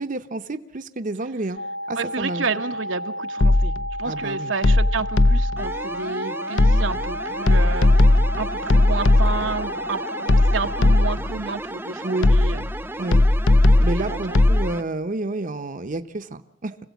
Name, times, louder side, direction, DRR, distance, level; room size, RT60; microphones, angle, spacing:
voice 1, 0.0-1.6 1.9-2.4 4.0-4.5 12.0-12.3 13.0-13.2 13.8-16.8, right 2 dB, 45° right, 9 dB, 0.8 m, -29 dB
sound 1, 1.6-11.1, equal, 40° left, 1.0 m, -32 dB
voice 2, 2.0-3.7 4.0-7.9 8.4-12.6 13.8-14.4, right 4 dB, 85° right, 6 dB, 1.1 m, -30 dB
sound 2, 3.4-3.9 4.6-5.7 6.6-7.1 7.5-9.6 10.3-11.3 12.2-12.7 13.1-14.6, left 2 dB, 75° left, 0.7 m, -17 dB
sound 3, 5.6-14.8, right 1 dB, 10° right, 0.8 m, -34 dB
26.0 x 16.0 x 8.3 m, 0.87 s
head